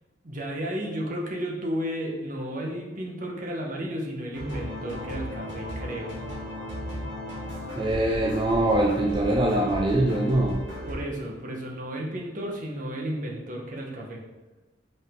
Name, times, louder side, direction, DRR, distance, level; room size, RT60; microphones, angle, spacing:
voice 1, 0.2-6.1 10.9-14.2, equal, 50° right, -1 dB, 1.1 m, -33 dB
sound 1, 4.3-10.9, equal, 90° right, 2.0 m, -35 dB
voice 2, 7.8-10.6, right 1 dB, 25° right, -1 dB, 0.5 m, -23 dB
5.5 x 5.3 x 3.7 m, 1.1 s
head